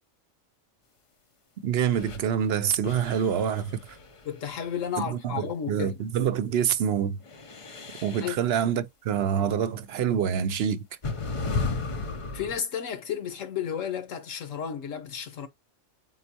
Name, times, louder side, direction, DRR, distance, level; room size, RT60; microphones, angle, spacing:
voice 1, 1.6-4.0 5.1-7.2 8.0-10.8, right 8 dB, 60° right, 0.7 m, -26 dB
sound 1, 1.9-2.2 2.8-4.9 7.2-8.3 9.8-9.9 11.0-12.6, left 4 dB, 45° left, 0.4 m, -34 dB
voice 2, 4.2-6.0 8.2-8.4 12.3-15.5, left 8 dB, 70° left, 1.3 m, -32 dB
4.3 x 3.7 x 2.8 m
omnidirectional pair, 1.4 m